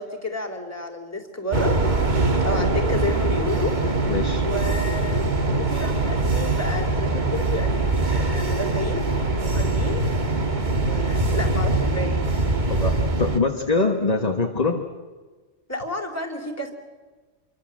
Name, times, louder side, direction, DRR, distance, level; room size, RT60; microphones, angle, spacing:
voice 1, 0.0-1.8 2.4-3.8 4.4-5.3 5.6-9.1 9.4-10.1 10.7-12.3 15.7-16.7, left 1 dB, 10° left, 3 dB, 3.0 m, -31 dB
sound 1, 1.5-13.4, right 2 dB, 35° right, 1.8 m, -23 dB
voice 2, 4.1-4.4 12.7-14.8, left 3 dB, 30° left, 3 dB, 1.7 m, -24 dB
27.0 x 23.5 x 7.7 m, 1.4 s
omnidirectional pair, 1.4 m